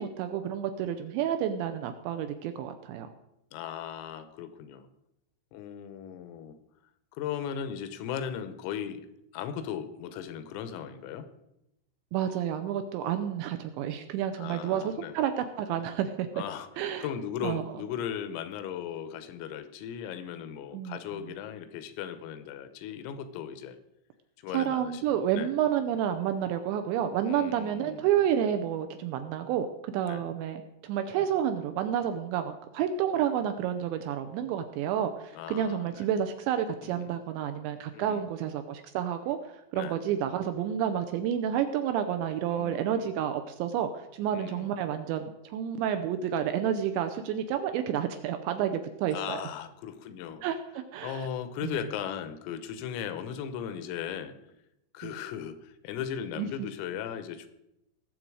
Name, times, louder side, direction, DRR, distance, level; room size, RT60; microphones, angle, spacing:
voice 1, 0.0-3.1 12.1-16.3 16.8-17.1 17.4-17.6 20.7-21.0 24.5-39.4 39.7-49.4 50.4-51.3 51.6-51.8 55.0-55.1 56.4-56.5, right 9 dB, 80° right, 8 dB, 2.7 m, -30 dB
voice 2, 3.5-4.9 5.5-6.6 7.1-9.1 9.3-11.3 14.4-15.2 16.4-16.7 17.0-23.8 24.4-25.5 27.3-28.1 30.1-30.2 31.1-31.3 35.3-36.1 36.8-37.2 37.9-38.3 39.8-40.0 42.5-43.1 44.3-44.8 49.1-50.4 51.0-54.4 54.9-57.5, left 9 dB, 85° left, 11 dB, 3.6 m, -37 dB
19.0 x 7.6 x 4.8 m, 0.85 s
omnidirectional pair, 5.9 m